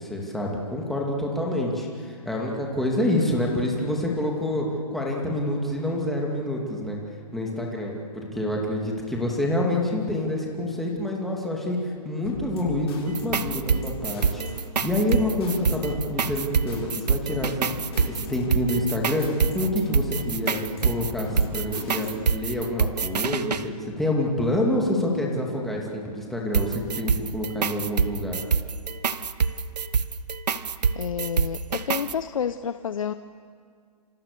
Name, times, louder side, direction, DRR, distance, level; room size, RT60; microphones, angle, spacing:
voice 1, 0.0-7.0 7.3-14.4 14.8-17.7 18.1-28.4, left 1 dB, ahead, -2 dB, 2.6 m, -27 dB
sound 1, 12.2-22.4, left 3 dB, 40° left, 7.8 m, -37 dB
sound 2, 13.1-23.6 26.5-32.1, right 6 dB, 75° right, 1.2 m, -26 dB
voice 2, 30.9-33.1, left 8 dB, 55° left, 11 dB, 0.8 m, -29 dB
28.0 x 26.5 x 6.9 m, 2.1 s
hypercardioid pair, 165°, 21 cm